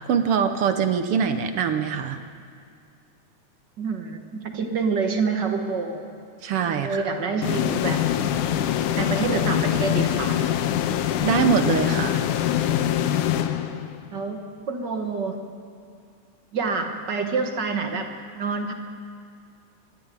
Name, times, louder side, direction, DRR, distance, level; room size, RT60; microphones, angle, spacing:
voice 1, 0.1-2.2 6.4-7.0 11.2-12.2, right 7 dB, 70° right, 8 dB, 1.4 m, -23 dB
voice 2, 3.8-6.0 6.7-8.1 8.9-10.5 14.1-15.4 16.5-18.7, right 4 dB, 50° right, 4 dB, 1.3 m, -27 dB
sound 1, 7.4-14.2, left 11 dB, 85° left, 2.3 m, -24 dB
25.0 x 11.0 x 9.8 m, 2.3 s
omnidirectional pair, 3.5 m